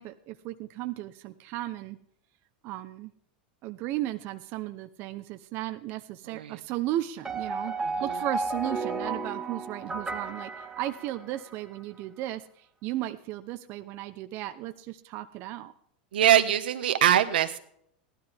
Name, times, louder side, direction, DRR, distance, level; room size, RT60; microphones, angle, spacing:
voice 1, 0.0-2.0 2.6-3.1 3.6-7.7 8.0-15.7, right 14 dB, 50° right, 8 dB, 0.9 m, -35 dB
voice 2, 6.3-6.6 7.8-8.2 16.1-17.6, right 11 dB, 85° right, 9 dB, 1.2 m, -23 dB
sound 1, 7.2-11.6, right 3 dB, 10° right, 1.9 m, -33 dB
17.0 x 12.5 x 3.5 m, 0.67 s
supercardioid pair, 120°, 5 cm